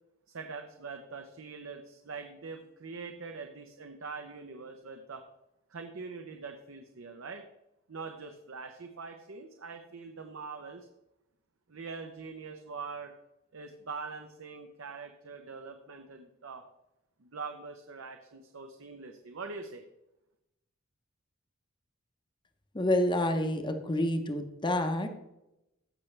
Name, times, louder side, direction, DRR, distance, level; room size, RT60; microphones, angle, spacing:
voice 1, 0.3-5.2 5.7-7.4 7.9-10.9 11.7-13.1 13.5-16.6 17.2-19.8, right 4 dB, 80° right, 5 dB, 0.8 m, -43 dB
voice 2, 22.7-25.2, left 1 dB, 25° left, 7 dB, 0.8 m, -28 dB
15.0 x 5.9 x 3.3 m, 0.89 s
head